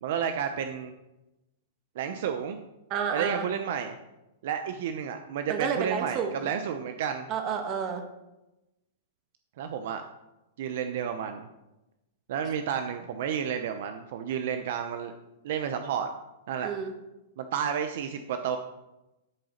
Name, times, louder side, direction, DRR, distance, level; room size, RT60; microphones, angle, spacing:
voice 1, 0.0-0.9 2.0-2.6 3.1-3.9 4.4-7.3 9.6-10.0 10.6-11.5 12.3-15.2 15.4-16.1 16.5-16.7 17.4-18.6, right 8 dB, 60° right, 7 dB, 0.7 m, -31 dB
voice 2, 2.9-3.5 5.5-6.5 7.3-8.0 16.6-16.9, right 6 dB, 30° right, 5 dB, 1.5 m, -30 dB
12.0 x 4.0 x 6.5 m, 0.96 s
hypercardioid pair, 150°, 0 cm